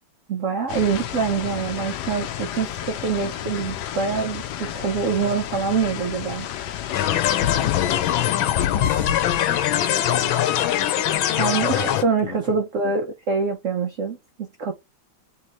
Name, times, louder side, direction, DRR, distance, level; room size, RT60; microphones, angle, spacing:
voice 1, 0.3-4.4 4.7-6.5 11.4-14.7, right 5 dB, 75° right, 0.7 m, -25 dB
sound 1, 0.7-8.3, left 11 dB, 70° left, 1.0 m, -32 dB
sound 2, 6.9-12.0, left 11 dB, 85° left, 1.4 m, -21 dB
voice 2, 7.5-9.1 9.6-10.8 11.1-11.5 12.2-12.6, left 6 dB, 50° left, 0.8 m, -37 dB
3.8 x 3.0 x 4.1 m
omnidirectional pair, 2.1 m